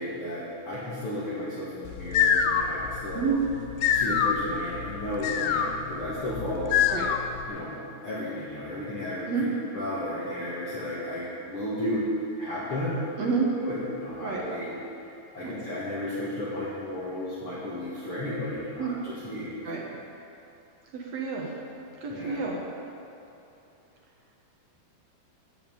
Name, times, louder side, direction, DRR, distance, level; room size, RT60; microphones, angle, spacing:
voice 1, 0.0-3.4 3.9-6.8 7.5-9.5 9.7-13.1 13.6-14.7 15.3-19.5 22.1-22.4, left 1 dB, 45° left, -9 dB, 2.2 m, -33 dB
sound 1, 1.9-7.5, left 7 dB, 90° left, 1.8 m, -26 dB
voice 2, 20.9-21.5 22.0-22.6, right 5 dB, 60° right, -2 dB, 2.0 m, -29 dB
14.0 x 5.8 x 9.1 m, 2.7 s
omnidirectional pair, 4.4 m